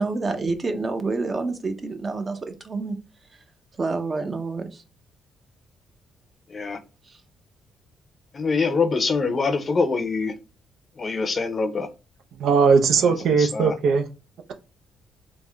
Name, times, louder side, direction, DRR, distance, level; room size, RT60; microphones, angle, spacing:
voice 1, 0.0-3.0 3.8-4.7, right 3 dB, 35° right, 7 dB, 0.7 m, -27 dB
voice 2, 8.3-10.3 11.0-11.9 13.0-13.8, left 4 dB, 35° left, 9 dB, 0.6 m, -24 dB
voice 3, 12.4-14.1, right 5 dB, 75° right, 5 dB, 0.6 m, -19 dB
3.5 x 2.1 x 3.4 m, 0.30 s
cardioid pair, 90°, 0 cm